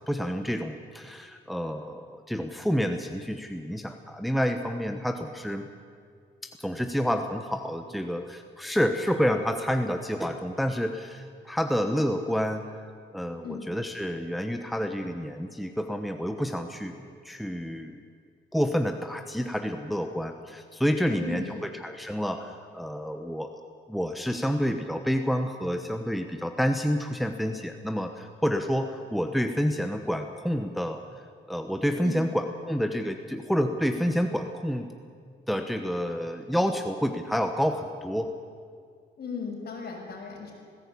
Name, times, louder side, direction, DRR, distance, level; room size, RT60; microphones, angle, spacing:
voice 1, 0.1-5.7 6.4-12.6 13.1-16.9 17.2-18.0 18.5-23.6 23.9-31.0 31.5-34.9 35.5-38.3, equal, ahead, 6 dB, 1.1 m, -29 dB
voice 2, 21.1-21.7 32.0-32.2 39.2-40.5, left 4 dB, 50° left, 0 dB, 6.0 m, -36 dB
18.5 x 16.0 x 8.6 m, 2.2 s
cardioid pair, 90°, 20 cm